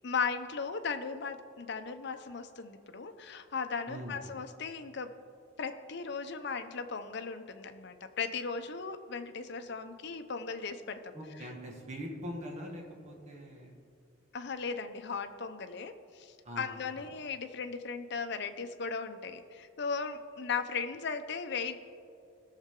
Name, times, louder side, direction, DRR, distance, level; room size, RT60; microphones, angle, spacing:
voice 1, 0.0-5.1 5.6-11.1 14.3-21.8, left 5 dB, 60° left, 8 dB, 0.6 m, -37 dB
voice 2, 3.9-4.3 11.1-13.8 16.4-16.8, equal, 40° right, 0 dB, 1.7 m, -42 dB
17.5 x 6.5 x 3.7 m, 2.4 s
head